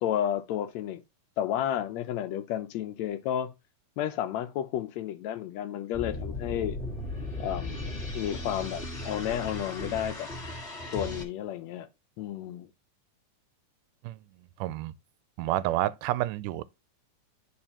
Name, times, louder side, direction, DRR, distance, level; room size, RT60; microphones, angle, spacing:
voice 1, 0.0-1.0 1.4-3.5 4.0-6.8 7.4-10.3 10.9-11.9 12.2-12.7, left 11 dB, 75° left, 1.7 m, -32 dB
sound 1, 5.9-11.2, left 2 dB, 25° left, 1.5 m, -36 dB
voice 2, 14.6-14.9 15.4-16.6, right 15 dB, 85° right, 2.1 m, -29 dB
11.0 x 4.8 x 2.9 m
omnidirectional pair, 3.6 m